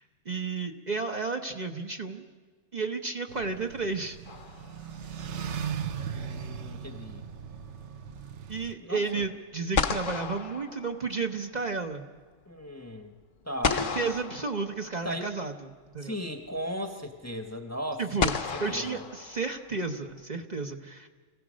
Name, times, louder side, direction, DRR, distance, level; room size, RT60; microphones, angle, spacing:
voice 1, 0.0-2.2 2.7-4.2 8.5-12.1 13.7-15.5 15.9-16.2 18.0-21.1, right 4 dB, 40° right, 3 dB, 1.0 m, -32 dB
sound 1, 3.3-8.7, right 7 dB, 70° right, 1.2 m, -38 dB
sound 2, 4.3-5.1 9.2-9.3 9.7-11.5 13.6-15.2 16.6-16.7 18.2-19.8, left 5 dB, 50° left, 0.9 m, -32 dB
voice 2, 6.1-7.2 8.8-9.3 12.4-13.1 13.4-13.9 15.0-15.3 16.0-19.0, equal, 15° left, 6 dB, 1.0 m, -37 dB
26.5 x 16.5 x 6.3 m, 1.5 s
omnidirectional pair, 1.3 m